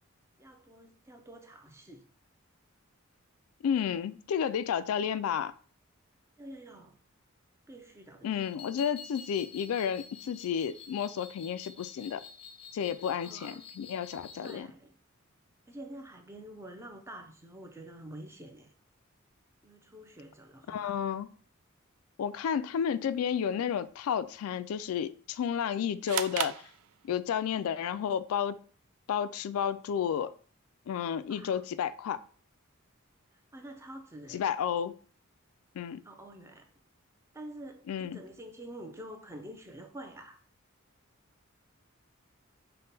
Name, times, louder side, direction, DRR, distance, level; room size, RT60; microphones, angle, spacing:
voice 1, 0.4-2.1 6.4-7.0 7.7-8.4 13.2-13.6 14.4-15.0 15.7-18.7 19.6-21.0 31.3-31.6 33.5-34.4 36.0-36.7 37.3-40.4, right 1 dB, 15° right, 0.5 m, -47 dB
voice 2, 3.6-5.5 8.2-12.2 12.7-14.7 20.7-21.3 22.2-26.6 27.0-28.6 29.1-30.3 30.9-32.2 34.3-34.9 35.8-36.0 37.9-38.2, left 8 dB, 90° left, 0.3 m, -31 dB
sound 1, 8.4-14.6, left 6 dB, 25° left, 0.6 m, -49 dB
sound 2, 26.1-27.5, right 11 dB, 85° right, 0.3 m, -36 dB
5.4 x 2.2 x 4.0 m
head